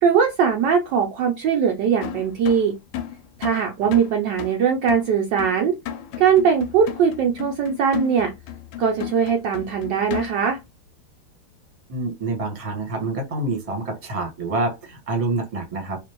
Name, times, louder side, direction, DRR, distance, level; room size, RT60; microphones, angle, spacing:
voice 1, 0.0-2.8 3.4-5.8 6.2-8.3 8.8-10.6, right 7 dB, 70° right, 1.1 m, -20 dB
sound 1, 2.0-10.6, left 10 dB, 85° left, 1.5 m, -34 dB
voice 2, 11.9-16.0, right 2 dB, 20° right, 1.0 m, -27 dB
4.2 x 2.6 x 2.9 m
omnidirectional pair, 2.4 m